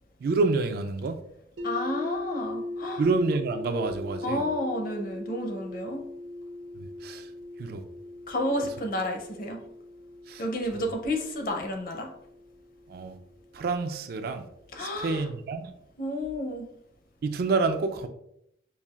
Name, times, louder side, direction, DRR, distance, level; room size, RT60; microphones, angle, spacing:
voice 1, 0.2-1.2 3.0-4.4 6.8-7.3 7.6-7.8 10.3-10.4 12.9-13.2 13.5-14.5 14.8-15.7 17.2-18.1, right 3 dB, 55° right, 0.3 m, -28 dB
voice 2, 1.6-3.0 4.2-6.0 8.3-9.6 10.4-12.1 14.7-15.3 16.0-16.7, left 1 dB, 50° left, 0.6 m, -31 dB
sound 1, 1.6-13.5, left 1 dB, 80° right, 0.7 m, -39 dB
5.3 x 2.4 x 2.4 m
head